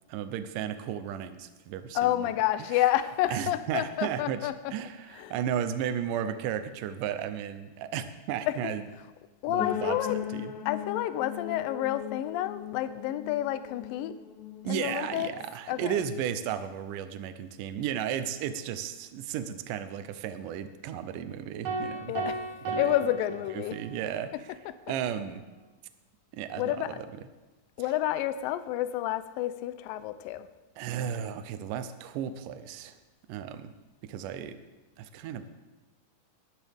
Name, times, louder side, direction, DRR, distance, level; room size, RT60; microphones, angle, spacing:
voice 1, 0.1-2.3 2.7-2.8 3.3-8.9 9.5-10.5 14.6-22.1 22.7-22.9 23.5-24.3 24.9-25.4 26.3-27.1 30.8-33.0 33.3-33.7 34.0-34.6 35.0-35.5, right 9 dB, 75° right, 10 dB, 2.2 m, -34 dB
voice 2, 2.0-4.7 5.2-5.3 8.5-8.7 9.4-10.2 10.7-14.1 14.7-15.3 15.7-16.0 22.1-23.8 26.6-27.0 27.8-30.5, left 13 dB, 80° left, 12 dB, 2.3 m, -29 dB
sound 1, 9.6-15.5, left 10 dB, 60° left, 2.5 m, -39 dB
sound 2, 21.6-24.1, right 3 dB, 55° right, 1.6 m, -35 dB
20.0 x 11.0 x 3.5 m, 1.2 s
omnidirectional pair, 4.1 m